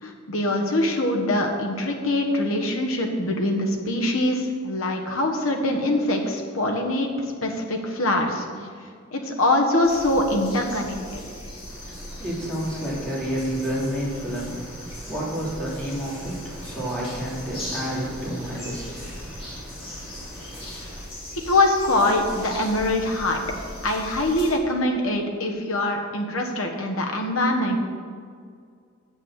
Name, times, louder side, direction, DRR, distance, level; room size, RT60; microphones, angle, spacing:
voice 1, 0.0-7.1 7.4-8.5 9.1-11.2 21.5-23.4 23.8-27.8, left 1 dB, 85° left, 2 dB, 1.4 m, -23 dB
sound 1, 9.8-24.5, left 1 dB, 30° left, 2.6 m, -39 dB
voice 2, 11.6-21.0, equal, 5° left, -7 dB, 2.9 m, -31 dB
8.1 x 6.2 x 7.4 m, 2.2 s
head